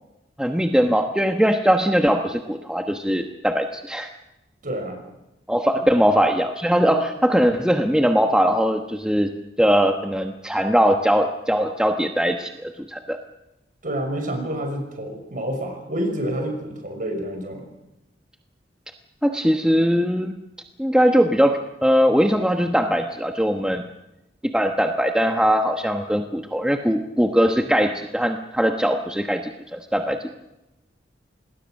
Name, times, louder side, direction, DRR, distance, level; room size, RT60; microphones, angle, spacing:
voice 1, 0.4-4.1 5.5-9.3 9.6-13.2 19.2-20.4 20.8-23.9 24.5-30.2, equal, 5° right, 4 dB, 1.2 m, -20 dB
voice 2, 4.6-5.0 6.8-6.9 13.8-17.6, right 1 dB, 45° right, 4 dB, 6.0 m, -28 dB
27.0 x 20.0 x 6.6 m, 0.92 s
head